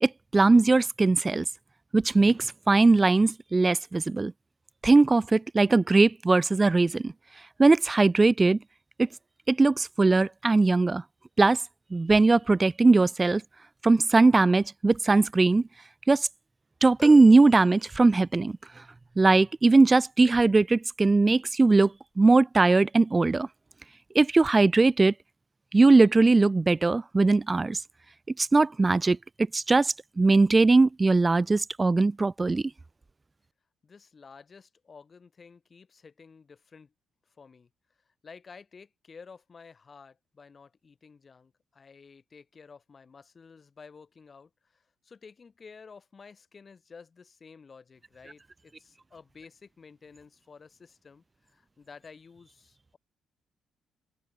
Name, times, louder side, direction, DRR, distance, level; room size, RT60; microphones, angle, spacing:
voice 1, 0.0-1.4 1.9-4.3 4.8-7.1 7.6-8.6 9.0-9.1 9.5-11.0 11.4-11.6 11.9-13.4 13.8-15.6 16.1-16.3 16.8-18.6 19.2-23.5 24.1-25.1 25.7-27.8 28.4-29.2 29.5-32.6, right 3 dB, 25° right, 0.7 m, -20 dB
sound 1, 17.0-18.4 19.1-19.2, left 1 dB, 10° left, 1.0 m, -44 dB
voice 2, 33.8-36.9 37.3-37.7 38.0-53.0, left 5 dB, 40° left, 4.9 m, -52 dB
open air
cardioid pair, 90°, 0 cm